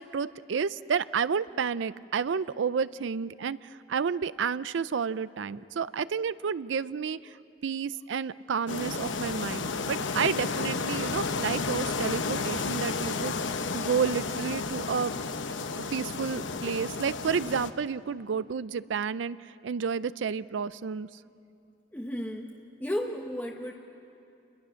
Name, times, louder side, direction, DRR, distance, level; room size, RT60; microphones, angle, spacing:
voice 1, 0.0-7.3 7.6-15.1 15.9-19.4 19.6-21.1, right 6 dB, 85° right, 16 dB, 0.4 m, -30 dB
sound 1, 8.7-17.7, left 4 dB, 90° left, 0.9 m, -32 dB
voice 2, 21.9-23.7, equal, 10° left, 2 dB, 0.9 m, -34 dB
28.5 x 22.0 x 6.3 m, 2.6 s
head